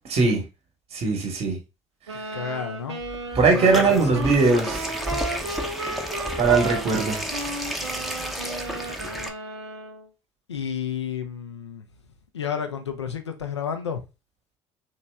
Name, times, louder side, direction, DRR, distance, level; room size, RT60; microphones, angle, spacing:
voice 1, 0.1-0.4 0.9-1.6 3.3-4.9 6.4-7.2, right 4 dB, 45° right, 1.1 m, -20 dB
sound 1, 2.1-10.1, right 2 dB, 85° right, 0.5 m, -34 dB
voice 2, 2.3-3.0 3.5-4.2 10.5-11.8 12.3-14.0, left 7 dB, 90° left, 0.5 m, -31 dB
sound 2, 3.0-9.3, equal, ahead, 0.6 m, -32 dB
3.0 x 2.6 x 3.3 m
figure-of-eight pair, 55°, 14 cm